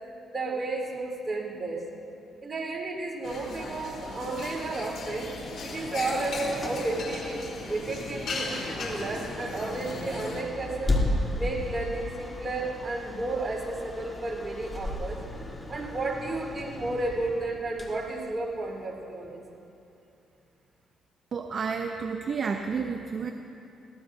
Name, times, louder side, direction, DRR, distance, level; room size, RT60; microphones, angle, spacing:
voice 1, 0.3-1.9 2.4-5.3 5.6-11.0 11.4-15.2 15.7-19.3, right 2 dB, 30° right, -1 dB, 4.0 m, -32 dB
sound 1, 3.2-10.4, left 3 dB, 65° left, 2.9 m, -37 dB
sound 2, 6.0-18.9, left 1 dB, 25° left, 2.8 m, -35 dB
voice 2, 21.3-23.3, right 5 dB, 50° right, 4 dB, 0.7 m, -31 dB
23.0 x 18.0 x 2.7 m, 2.8 s
cardioid pair, 90°, 0 cm